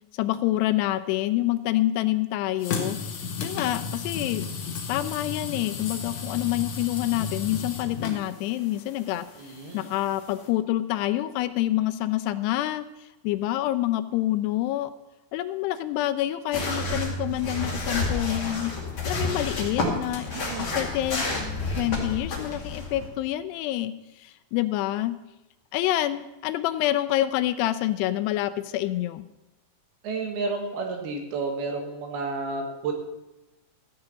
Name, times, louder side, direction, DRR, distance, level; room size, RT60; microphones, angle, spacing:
voice 1, 0.1-3.0 3.4-4.5 4.9-9.3 9.7-14.9 15.3-18.7 19.0-20.3 20.6-21.2 21.8-25.1 25.7-29.2, left 14 dB, 85° left, 13 dB, 2.6 m, -27 dB
sound 1, 2.6-10.5, left 5 dB, 60° left, 2.1 m, -34 dB
voice 2, 9.4-9.9 20.3-20.8 30.0-32.9, right 3 dB, 70° right, 3 dB, 3.4 m, -31 dB
sound 2, 16.5-23.1, left 2 dB, 35° left, 2.4 m, -30 dB
13.5 x 6.7 x 7.0 m, 0.99 s
omnidirectional pair, 4.9 m